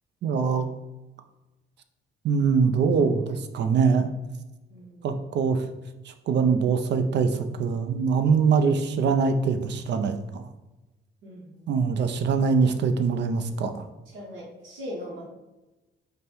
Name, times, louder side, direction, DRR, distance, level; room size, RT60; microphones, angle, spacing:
voice 1, 0.2-0.7 2.2-4.1 5.0-5.7 6.1-10.5 11.7-13.7, right 5 dB, 60° right, 8 dB, 0.5 m, -23 dB
voice 2, 4.7-5.2 11.2-11.9 14.1-15.3, equal, 80° right, -4 dB, 1.0 m, -40 dB
5.1 x 2.2 x 4.3 m, 1.1 s
cardioid pair, 90°, 20 cm